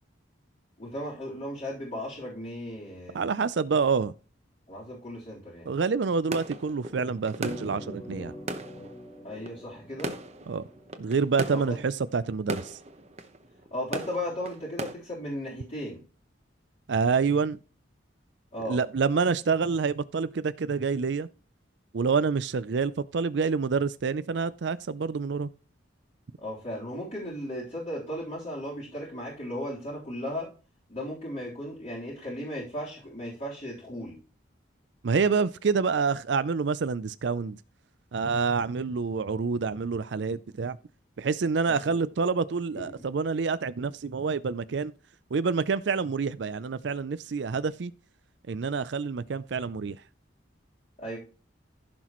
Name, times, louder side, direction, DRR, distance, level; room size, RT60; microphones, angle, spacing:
voice 1, 0.8-3.2 4.7-5.7 9.2-10.1 11.5-11.8 13.7-16.0 18.5-18.8 26.4-30.5 30.9-34.2 41.7-42.0 42.7-42.8 51.0-51.2, equal, 40° left, 3.7 m, -36 dB
voice 2, 3.1-4.1 5.7-8.3 10.5-10.6 11.0-12.8 16.9-17.6 18.7-21.3 21.9-25.5 35.0-37.6 38.1-40.8 41.2-44.9 45.3-47.9 48.5-50.0, right 5 dB, 65° right, 0.5 m, -27 dB
sound 1, 6.3-14.9, right 2 dB, 35° right, 1.0 m, -39 dB
sound 2, 7.4-12.0, left 1 dB, 20° left, 1.3 m, -44 dB
15.0 x 6.1 x 3.1 m
head